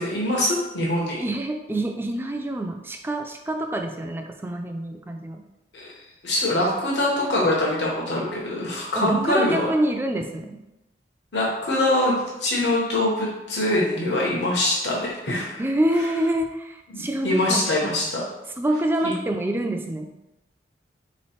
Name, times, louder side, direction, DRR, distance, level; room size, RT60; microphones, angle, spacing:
voice 1, 0.0-1.2 5.7-5.9 6.2-9.7 11.3-12.1 12.4-15.6 16.9-18.2 19.0-19.1, left 1 dB, 80° left, -4 dB, 1.1 m, -23 dB
voice 2, 1.2-5.4 9.0-10.6 15.6-17.9 18.6-20.1, right 1 dB, 10° right, 3 dB, 0.4 m, -26 dB
3.8 x 3.1 x 4.3 m, 0.96 s
head